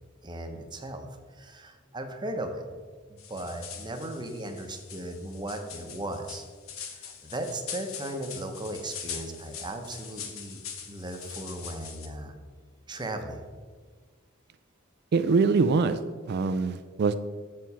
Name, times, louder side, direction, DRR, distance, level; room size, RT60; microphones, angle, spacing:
voice 1, 0.2-1.0 1.3-2.7 3.1-6.5 6.9-10.6 10.9-12.4 12.9-13.4, right 1 dB, 20° right, 5 dB, 0.8 m, -37 dB
sound 1, 3.2-12.1, left 7 dB, 90° left, 0.9 m, -42 dB
voice 2, 15.1-16.0 16.3-17.2, right 4 dB, 55° right, 11 dB, 0.3 m, -23 dB
7.5 x 4.7 x 5.4 m, 1.5 s
head